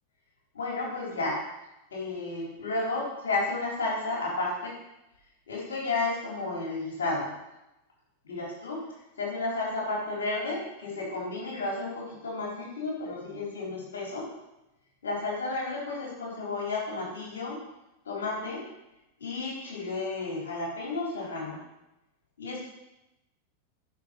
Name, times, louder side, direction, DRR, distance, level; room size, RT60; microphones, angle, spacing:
voice 1, 0.5-1.4 1.9-4.7 5.5-7.3 8.2-8.8 9.2-14.3 15.0-17.6 18.0-18.6 19.2-21.6 22.4-22.7, left 3 dB, 65° left, -4 dB, 4.4 m, -32 dB
10.5 x 6.5 x 6.7 m, 0.93 s
figure-of-eight pair, 90°, 0 cm